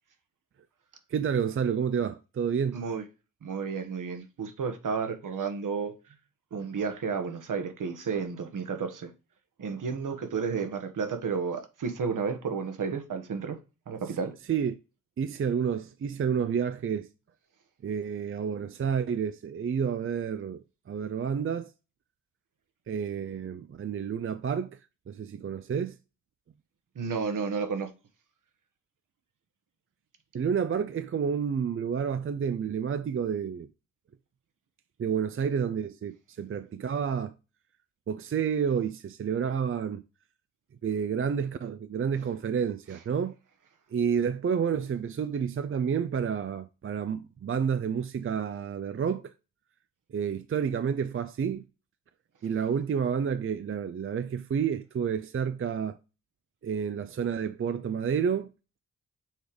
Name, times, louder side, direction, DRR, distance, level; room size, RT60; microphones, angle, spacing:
voice 1, 1.1-2.8 14.5-14.7 15.2-17.1 17.8-21.7 22.9-24.8 25.1-26.0 30.3-33.7 35.0-37.3 38.1-40.0 40.8-43.3 43.9-49.3 50.1-51.6 52.4-56.0 56.6-58.5, right 7 dB, 40° right, 0.5 m, -30 dB
voice 2, 2.7-3.0 3.4-5.9 6.5-9.1 9.6-13.6 13.9-14.3 26.9-27.9, right 5 dB, 65° right, 1.3 m, -32 dB
6.5 x 3.4 x 4.8 m
cardioid pair, 55°, 34 cm